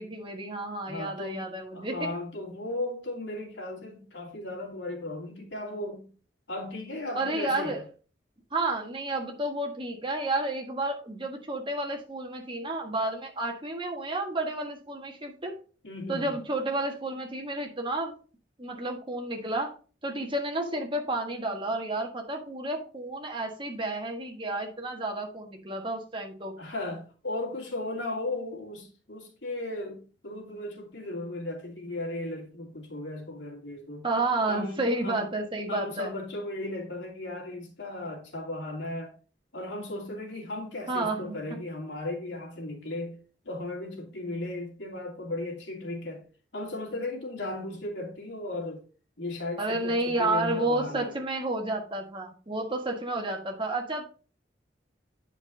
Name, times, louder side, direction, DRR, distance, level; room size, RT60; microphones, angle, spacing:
voice 1, 0.0-2.1 7.2-7.8 8.5-15.5 16.1-18.1 18.6-19.7 20.0-26.5 34.0-36.1 40.9-41.6 49.6-54.0, right 2 dB, 30° right, 1.6 m, -31 dB
voice 2, 0.9-6.1 6.5-7.8 15.8-16.4 26.6-34.1 34.5-35.3 35.7-39.1 39.5-43.1 43.4-46.2 46.5-48.8 49.2-51.1, left 2 dB, 85° left, 2.7 m, -36 dB
9.4 x 5.2 x 3.9 m
head